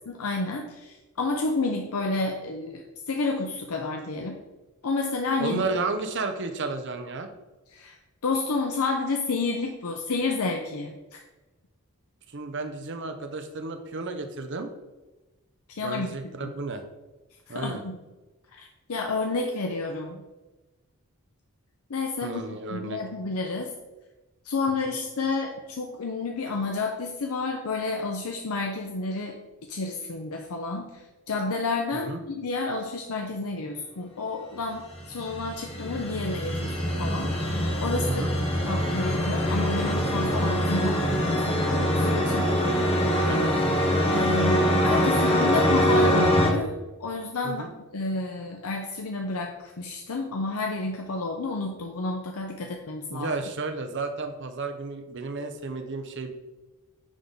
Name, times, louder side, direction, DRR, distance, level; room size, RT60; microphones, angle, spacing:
voice 1, 0.1-4.4 4.8-5.6 7.7-11.2 15.7-16.1 16.4-16.5 17.5-18.0 18.6-20.2 21.9-22.4 22.7-23.7 24.4-29.4 29.7-37.3 37.8-38.2 38.6-42.5 44.1-46.7 47.0-47.6 47.9-53.3, left 3 dB, 75° left, 3 dB, 0.6 m, -30 dB
voice 2, 5.4-7.3 12.3-14.7 15.8-16.8 17.5-17.8 22.2-23.0 31.9-32.2 38.1-38.3 40.9-41.0 43.3-43.5 47.4-47.7 53.1-56.3, right 3 dB, 55° right, 7 dB, 0.8 m, -32 dB
sound 1, 34.9-46.5, equal, 25° left, 1.2 m, -24 dB
9.9 x 3.5 x 4.0 m, 1.1 s
head